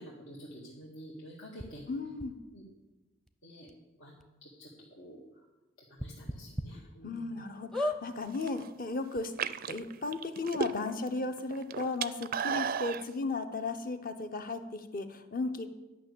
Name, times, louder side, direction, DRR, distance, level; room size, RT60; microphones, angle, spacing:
voice 1, 0.0-1.9 2.5-2.6 3.4-3.7 4.0-4.1 4.4-5.5 5.9-7.4 11.2-11.3, equal, 75° left, -4 dB, 2.0 m, -49 dB
sound 1, 1.6-1.7 2.2-2.3 3.3-3.4 3.7-3.8 4.2-4.3 6.0-6.7 7.1-7.2 7.7-8.0 8.8-8.9 9.1-9.2, left 1 dB, ahead, 0.6 m, -33 dB
voice 2, 1.9-2.4 7.0-9.3 9.7-15.7, left 3 dB, 45° left, 8 dB, 0.9 m, -35 dB
Gorgee de biere, 8.2-8.7 9.2-11.1 11.4-13.0, right 6 dB, 45° right, 0.4 m, -34 dB
11.5 x 6.0 x 8.5 m, 1.1 s
head